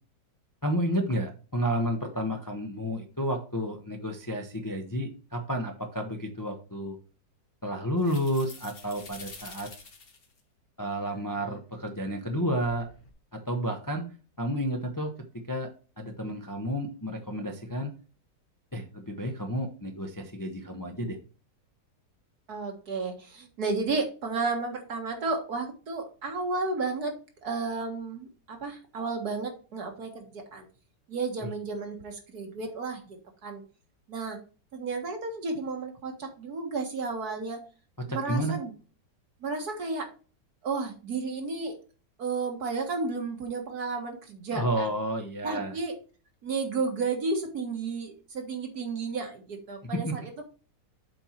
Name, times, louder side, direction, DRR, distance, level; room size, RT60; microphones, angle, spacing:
voice 1, 0.6-7.0 7.6-9.7 10.8-12.9 13.3-14.1 14.4-15.7 16.0-17.9 18.7-21.2 31.4-31.5 38.0-38.6 44.5-45.8 49.8-50.2, equal, 15° left, 3 dB, 0.7 m, -31 dB
sound 1, 8.0-10.4 11.0-11.6 12.3-13.1, left 4 dB, 35° left, 1.2 m, -48 dB
voice 2, 22.5-27.1 27.4-30.7 31.1-33.6 34.1-34.4 34.7-37.6 38.1-38.7 39.4-40.1 40.6-41.8 42.2-44.9 45.4-46.0 46.4-50.4, right 4 dB, 60° right, 3 dB, 2.0 m, -32 dB
7.8 x 4.5 x 4.4 m, 0.37 s
omnidirectional pair, 1.9 m